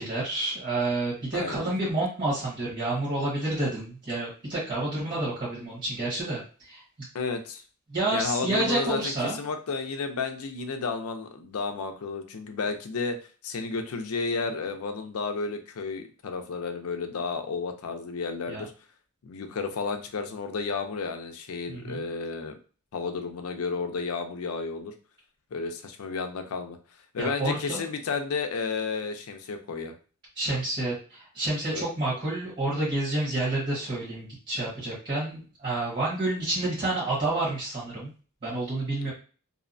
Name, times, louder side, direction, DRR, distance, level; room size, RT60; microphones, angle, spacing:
voice 1, 0.0-6.8 7.9-9.4 18.5-18.6 21.7-22.0 27.2-27.8 30.3-38.1 38.4-39.1, right 2 dB, 40° right, -7 dB, 1.2 m, -29 dB
voice 2, 1.3-1.7 7.1-7.6 8.1-13.2 13.4-18.7 19.2-22.6 22.9-24.9 25.5-26.8 27.1-29.9 31.7-31.9 39.0-39.1, left 4 dB, 70° left, 6 dB, 0.5 m, -32 dB
2.7 x 2.1 x 2.5 m, 0.37 s
head